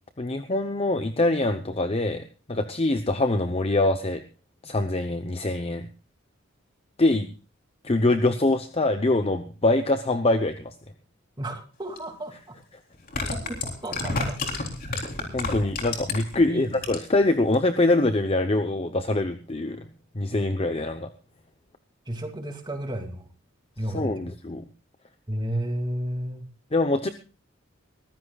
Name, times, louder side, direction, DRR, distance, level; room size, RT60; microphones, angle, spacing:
voice 1, 0.2-4.2 4.6-5.8 7.0-7.3 7.8-10.7 15.3-19.8 20.1-21.1 23.9-24.6 26.7-27.1, left 2 dB, 30° left, 8 dB, 0.8 m, -24 dB
voice 2, 11.4-12.6 13.3-14.4 16.4-16.8 22.1-23.3 23.8-24.3 25.3-26.5, right 1 dB, 20° right, 4 dB, 2.6 m, -32 dB
sound 1, 12.0-12.1 12.9-16.4 16.7-17.2 17.5-17.6, left 3 dB, 45° left, 3.7 m, -29 dB
23.0 x 15.0 x 2.4 m, 0.34 s
head